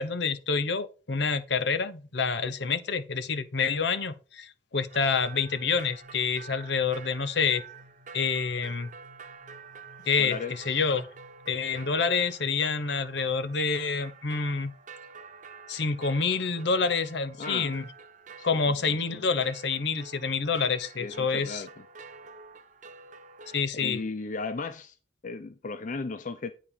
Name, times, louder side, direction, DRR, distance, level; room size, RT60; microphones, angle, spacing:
voice 1, 0.0-7.6 8.1-8.9 10.1-11.1 11.5-14.7 15.7-17.9 18.4-21.6 23.5-24.0, left 5 dB, 65° left, 0.9 m, -27 dB
sound 1, 4.9-23.6, right 5 dB, 45° right, 0.8 m, -48 dB
sound 2, 5.7-13.3, left 1 dB, 75° right, 1.3 m, -58 dB
voice 2, 10.2-10.8 17.4-17.8 18.4-19.2 21.0-21.7 23.4-25.0 25.2-26.5, left 4 dB, 45° left, 0.6 m, -36 dB
9.2 x 5.0 x 4.9 m
head